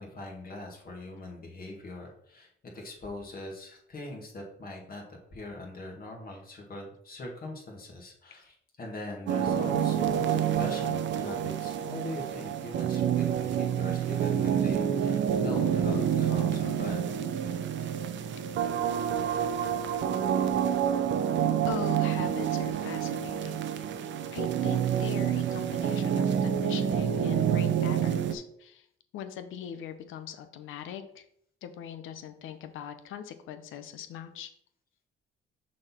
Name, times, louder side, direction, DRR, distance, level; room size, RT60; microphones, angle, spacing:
voice 1, 0.0-17.0, left 2 dB, 50° left, 0 dB, 2.0 m, -41 dB
sound 1, 9.3-28.4, right 9 dB, 70° right, 0.6 m, -28 dB
voice 2, 21.6-23.6 24.3-28.9 29.1-31.2 31.6-34.5, left 9 dB, 85° left, 9 dB, 0.7 m, -41 dB
6.3 x 4.2 x 4.4 m, 0.69 s
cardioid pair, 90°, 20 cm